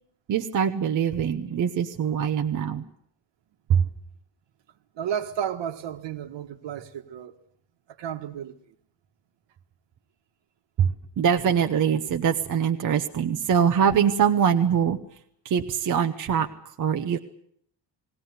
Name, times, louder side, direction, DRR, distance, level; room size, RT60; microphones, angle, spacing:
voice 1, 0.3-2.8 3.7-3.9 10.8-10.9 11.2-15.0 15.4-16.5 16.8-17.2, right 8 dB, 45° right, 1.0 m, -23 dB
voice 2, 5.0-7.4 8.0-8.8, right 9 dB, 70° right, 1.8 m, -32 dB
20.5 x 17.5 x 9.6 m
cardioid pair, 180°, 45 cm